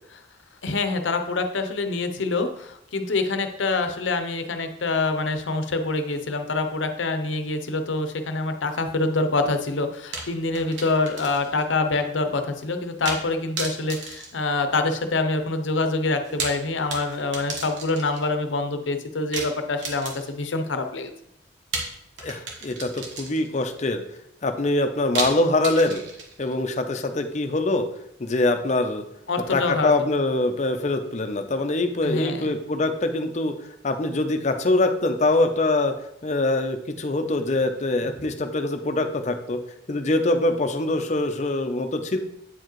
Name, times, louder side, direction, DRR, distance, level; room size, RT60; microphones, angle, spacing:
voice 1, 0.6-21.1 29.3-29.9 32.0-32.6, left 3 dB, 90° left, 7 dB, 0.7 m, -26 dB
sound 1, 10.1-11.6 11.9-12.0 13.0-13.3 13.6-15.1 16.1-18.3 19.3-20.5 21.7-23.6 25.1-26.5, right 3 dB, 80° right, 1.3 m, -34 dB
voice 2, 22.2-24.0 24.4-26.0 26.4-27.9 28.2-29.0 29.5-33.6 33.8-35.9 36.2-39.6 39.9-42.2, left 2 dB, 40° left, 7 dB, 0.6 m, -23 dB
8.7 x 4.7 x 3.0 m, 0.76 s
head